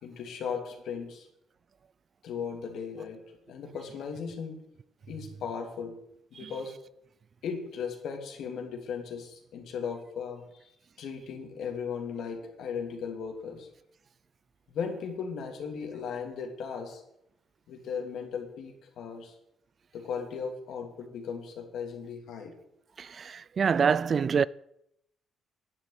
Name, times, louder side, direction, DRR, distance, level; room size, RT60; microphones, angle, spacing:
voice 1, 0.0-1.3 2.2-3.2 3.5-4.6 5.1-6.0 6.3-6.7 7.4-10.7 11.0-13.7 14.7-17.0 17.7-19.3 19.9-22.5, left 6 dB, 75° left, 2.7 m, -37 dB
voice 2, 23.0-24.5, right 6 dB, 45° right, 0.4 m, -26 dB
10.5 x 8.3 x 8.2 m
cardioid pair, 90°, 0 cm